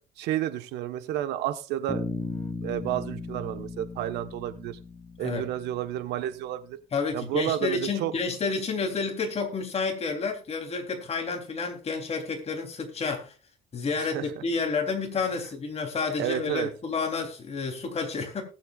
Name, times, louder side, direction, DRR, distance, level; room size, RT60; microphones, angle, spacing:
voice 1, 0.2-2.0 2.6-4.8 5.2-6.8 7.1-8.1 14.0-14.2 16.2-16.7, right 12 dB, 85° right, 1.3 m, -31 dB
Bass guitar, 1.9-5.9, left 3 dB, 15° left, 1.4 m, -36 dB
voice 2, 6.9-13.3 13.7-18.4, left 4 dB, 40° left, 3.5 m, -30 dB
19.5 x 7.8 x 2.5 m
cardioid pair, 110°, 17 cm